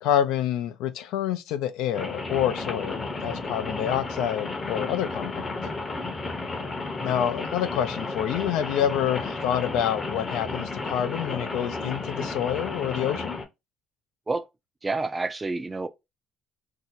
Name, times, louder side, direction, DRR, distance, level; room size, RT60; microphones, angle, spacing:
voice 1, 0.0-5.5 7.0-13.4, left 10 dB, 80° left, 0.4 m, -27 dB
Rain, 1.9-13.4, left 3 dB, 30° left, 0.7 m, -33 dB
voice 2, 14.8-15.9, right 3 dB, 20° right, 0.4 m, -29 dB
2.7 x 2.1 x 3.9 m
supercardioid pair, 75°, 0 cm